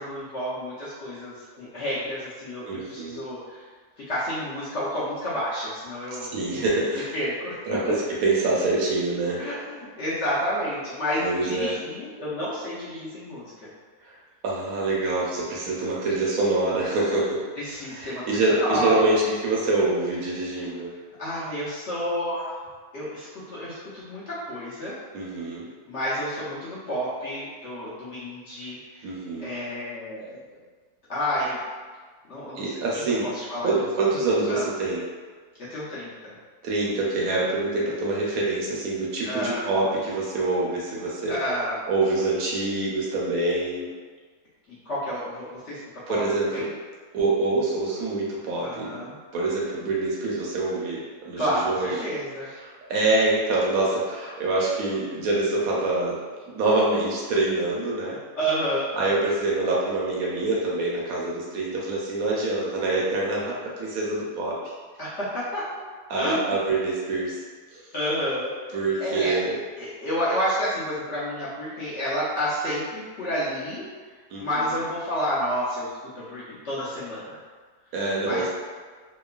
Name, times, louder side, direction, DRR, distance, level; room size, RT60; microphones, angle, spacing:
voice 1, 0.0-3.7 4.1-6.3 7.1-7.6 9.4-13.7 17.6-19.1 20.5-20.7 21.2-22.5 22.9-24.9 25.8-29.1 29.4-30.6 31.1-31.6 32.3-33.7 34.5-34.6 35.6-36.3 39.3-39.7 41.3-41.8 44.7-45.8 46.1-46.2 46.5-46.6 48.6-49.2 51.4-52.5 58.4-58.9 65.0-65.6 66.2-66.6 67.9-69.4 69.8-73.9 74.4-77.4 78.2-78.5, equal, 60° left, -10 dB, 0.8 m, -30 dB
voice 2, 2.7-3.2 6.3-7.1 7.4-9.4 11.2-11.7 14.0-14.1 14.4-17.4 17.9-20.9 25.1-25.7 29.0-29.5 32.6-33.3 33.6-35.0 36.6-41.4 41.9-43.9 46.1-46.7 47.1-48.9 49.3-52.1 52.6-56.2 56.5-58.2 59.0-64.6 66.1-67.4 67.7-67.9 68.7-69.6 74.3-74.5 77.9-78.5, right 2 dB, 70° right, -5 dB, 0.9 m, -25 dB
2.9 x 2.1 x 2.3 m, 1.5 s
omnidirectional pair, 1.6 m